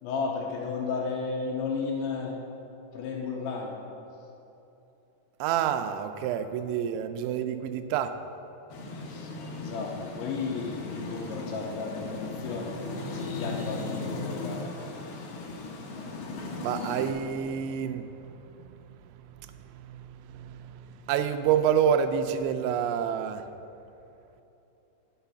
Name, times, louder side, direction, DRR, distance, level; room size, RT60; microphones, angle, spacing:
voice 1, 0.0-2.4 2.9-3.8 8.9-12.7 13.1-14.7 15.1-15.2, left 4 dB, 85° left, -3 dB, 3.2 m, -34 dB
voice 2, 5.4-8.1 16.6-18.1 18.6-18.7 19.7-23.4, right 8 dB, 90° right, 8 dB, 2.9 m, -28 dB
sound 1, 8.7-17.1, left 3 dB, 70° left, 2.8 m, -37 dB
9.6 x 7.0 x 5.6 m, 2.9 s
omnidirectional pair, 5.2 m